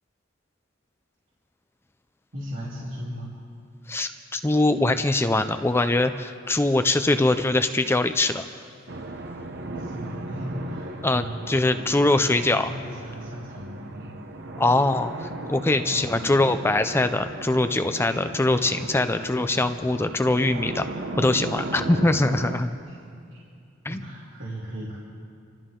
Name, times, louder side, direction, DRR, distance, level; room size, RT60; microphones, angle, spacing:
voice 1, 2.3-3.3 9.8-14.2 15.7-16.3 22.8-23.0 23.3-23.4 23.9-25.0, equal, 80° right, -8 dB, 3.4 m, -37 dB
voice 2, 3.9-8.4 11.0-12.7 14.6-20.9 21.2-22.7 23.9-24.0, left 2 dB, 10° left, 9 dB, 0.4 m, -22 dB
sound 1, 8.9-22.6, right 2 dB, 60° right, 0.9 m, -36 dB
27.0 x 13.0 x 3.8 m, 2.5 s
head